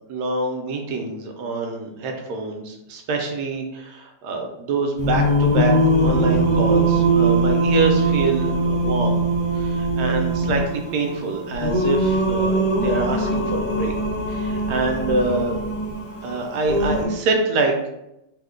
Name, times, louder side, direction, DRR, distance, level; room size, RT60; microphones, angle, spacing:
voice 1, 0.1-9.2 9.5-13.9 14.3-15.6 16.2-17.9, right 3 dB, 75° right, 3 dB, 1.2 m, -25 dB
Singing, 5.0-17.1, right 2 dB, 50° left, 0.9 m, -21 dB
3.0 x 2.1 x 3.6 m, 0.87 s
omnidirectional pair, 1.8 m